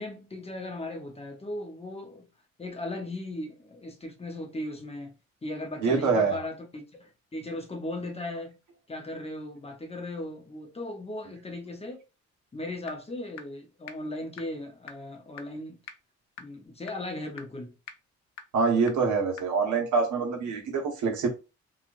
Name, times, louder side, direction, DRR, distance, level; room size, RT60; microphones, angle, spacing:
voice 1, 0.0-2.3 2.6-5.2 5.4-8.6 8.9-12.0 12.5-15.8 16.4-17.7, left 1 dB, 20° left, 0.7 m, -37 dB
voice 2, 5.8-6.4 18.5-21.3, right 4 dB, 75° right, 1.2 m, -25 dB
sound 1, 12.9-13.0 13.4-13.5 13.9-14.0 14.4-14.5 14.9-15.0 15.4-15.5 15.9-16.0 16.4-16.5 16.9-17.0 17.4-17.5 17.9-18.0 18.4-18.5 18.9-19.0 19.4-19.5, left 8 dB, 65° left, 0.5 m, -40 dB
3.1 x 2.4 x 2.5 m
cardioid pair, 90°, 30 cm